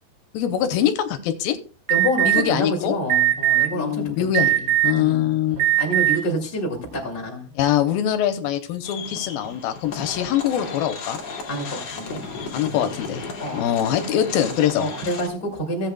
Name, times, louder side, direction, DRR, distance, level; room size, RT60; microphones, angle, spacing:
voice 1, 0.3-1.6 2.2-2.9 3.7-4.6 4.8-5.6 7.6-11.2 12.5-13.2 13.5-14.9, left 10 dB, 85° left, 9 dB, 2.6 m, -23 dB
voice 2, 1.9-4.0 4.4-7.5 11.5-12.2 12.7-12.9 13.4-13.6 14.8-15.9, equal, 15° left, -1 dB, 2.2 m, -28 dB
Alarm, 1.9-2.4 3.1-3.7 4.3-5.0 5.6-6.2, right 14 dB, 60° right, 2.6 m, -18 dB
sound 1, 8.8-15.3, left 4 dB, 50° left, 2.6 m, -35 dB
16.5 x 8.1 x 2.3 m, 0.38 s
omnidirectional pair, 4.2 m